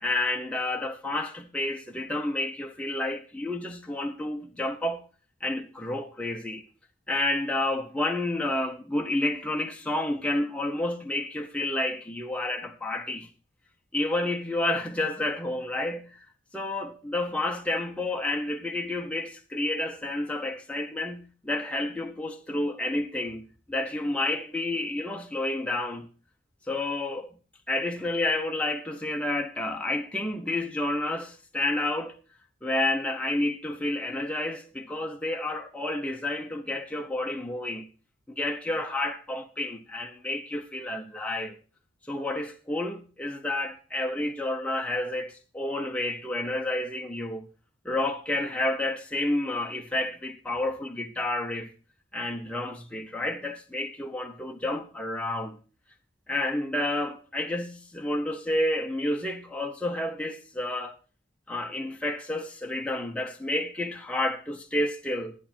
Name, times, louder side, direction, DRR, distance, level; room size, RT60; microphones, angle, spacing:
voice 1, 0.0-5.0 5.4-6.6 7.1-13.3 13.9-16.2 16.5-26.1 26.7-27.4 27.7-32.2 32.6-37.9 38.3-41.6 42.1-47.5 47.8-51.7 52.1-55.6 56.3-60.9 61.5-65.4, left 1 dB, 5° left, 0.9 m, -30 dB
11.5 x 9.9 x 4.5 m
head